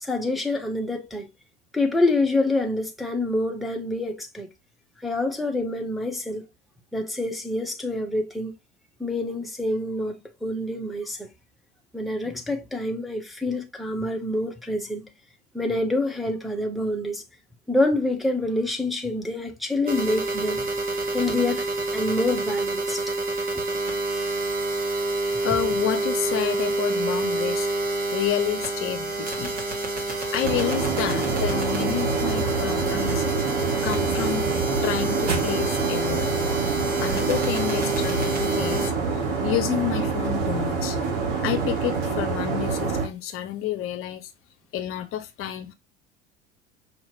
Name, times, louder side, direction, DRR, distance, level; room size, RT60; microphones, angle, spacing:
voice 1, 0.0-1.3 1.7-4.5 5.0-6.4 6.9-8.5 9.0-11.3 11.9-15.1 15.5-17.2 17.7-20.7 21.1-21.6 21.9-23.0, left 2 dB, ahead, 0.8 m, -26 dB
sound 1, 19.9-38.9, right 2 dB, 25° right, 1.7 m, -28 dB
voice 2, 25.4-27.7 28.1-29.6 30.3-33.2 33.8-34.4 34.8-36.3 37.0-38.9 39.4-41.0 41.4-44.3 44.7-45.7, left 11 dB, 40° left, 0.8 m, -29 dB
sound 2, 30.4-43.1, right 4 dB, 55° right, 2.3 m, -26 dB
5.7 x 2.8 x 2.8 m
figure-of-eight pair, 80°, 34 cm